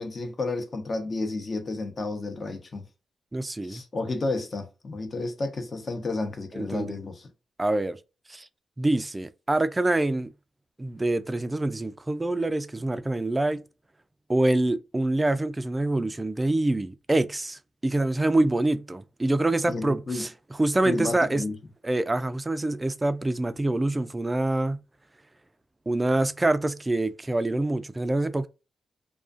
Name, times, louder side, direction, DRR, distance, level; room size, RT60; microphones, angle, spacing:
voice 1, 0.0-2.8 3.6-7.3 19.7-20.3 20.8-21.6, left 2 dB, 45° left, 0.7 m, -31 dB
voice 2, 3.3-3.8 6.5-7.0 7.6-8.0 8.3-8.5 8.8-10.3 10.8-13.6 14.3-20.3 20.6-21.4 21.8-24.8 25.9-28.5, right 2 dB, 25° right, 0.3 m, -25 dB
2.3 x 2.3 x 2.4 m
cardioid pair, 60°, 0 cm